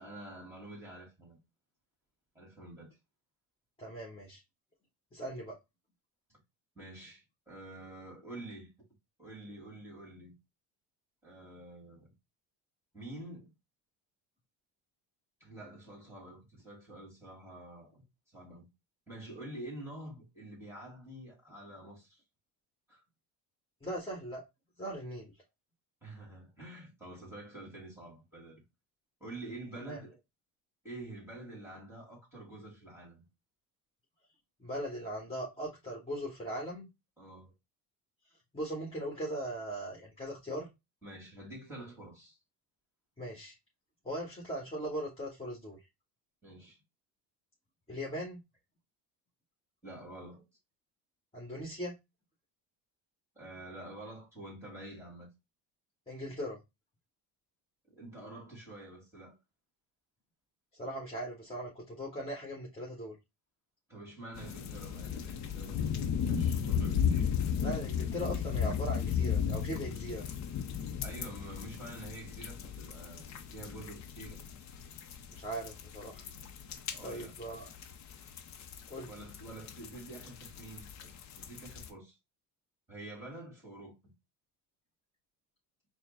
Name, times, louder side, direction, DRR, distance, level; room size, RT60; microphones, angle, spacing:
voice 1, 0.0-1.4 2.3-3.0 6.3-6.4 6.8-8.7 9.2-10.4 11.2-12.1 12.9-13.5 15.4-18.0 18.3-18.7 19.1-22.2 22.9-23.0 26.0-28.6 29.2-30.2 30.8-33.2 37.2-37.5 41.0-42.4 46.4-46.8 49.8-50.4 53.4-55.3 57.9-59.4 63.9-67.3 71.0-74.4 76.9-77.3 79.1-82.2 82.9-84.0, right 1 dB, 5° right, 2.2 m, -47 dB
voice 2, 3.8-4.4 5.1-5.5 23.8-24.4 24.8-25.3 29.9-30.0 34.6-36.9 38.5-40.7 43.2-43.5 44.0-45.8 47.9-48.4 51.3-51.9 56.1-56.6 60.7-63.1 67.6-70.3 75.3-76.2 77.0-77.7 78.9-79.1, right 1 dB, 15° left, 1.6 m, -39 dB
sound 1, 64.4-81.9, left 7 dB, 45° left, 0.7 m, -35 dB
4.2 x 2.1 x 3.8 m
cardioid pair, 110°, 40 cm